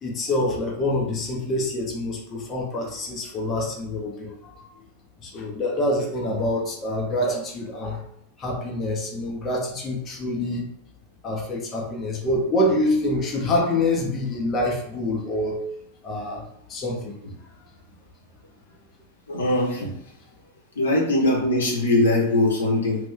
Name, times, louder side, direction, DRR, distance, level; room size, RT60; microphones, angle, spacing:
voice 1, 0.0-4.7 5.2-8.0 8.4-10.7 11.2-15.6 16.0-17.2, left 1 dB, 25° left, -1 dB, 0.8 m, -26 dB
voice 2, 19.3-19.9 20.8-23.0, left 1 dB, 70° left, -2 dB, 0.9 m, -21 dB
2.8 x 2.6 x 3.4 m, 0.71 s
figure-of-eight pair, 90°, 0 cm